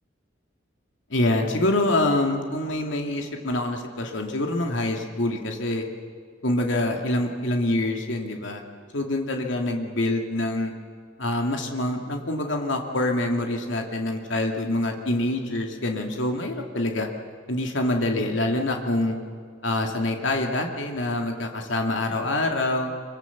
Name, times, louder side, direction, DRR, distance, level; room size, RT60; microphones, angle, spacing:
voice 1, 1.1-5.8 6.4-8.6 8.9-10.7 11.2-17.1 17.5-19.2 19.6-22.9, left 1 dB, 75° left, 2 dB, 2.5 m, -25 dB
25.5 x 24.0 x 7.3 m, 2.1 s
head